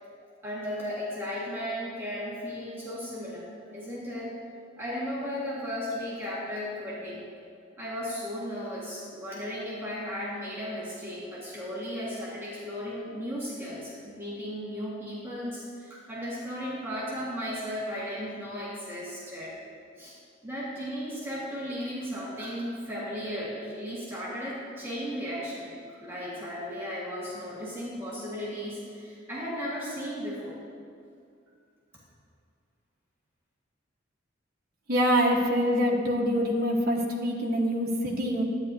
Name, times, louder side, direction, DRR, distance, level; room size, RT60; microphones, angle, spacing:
voice 1, 0.2-4.4 4.8-7.2 7.8-19.5 20.0-20.1 20.4-30.6, equal, 10° right, -8 dB, 1.6 m, -35 dB
voice 2, 34.9-38.4, equal, 50° right, -2 dB, 1.2 m, -25 dB
12.0 x 9.6 x 2.7 m, 2.4 s
head